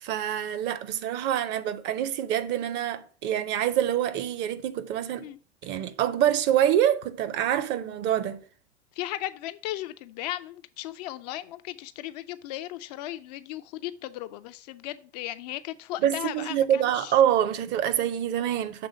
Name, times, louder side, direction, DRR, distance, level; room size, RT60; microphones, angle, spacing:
voice 1, 0.0-5.3 5.6-8.4 16.0-18.9, right 10 dB, 35° right, 0.6 m, -26 dB
voice 2, 9.0-17.1, left 14 dB, 40° left, 0.4 m, -36 dB
6.8 x 3.6 x 6.0 m
figure-of-eight pair, 90°, 34 cm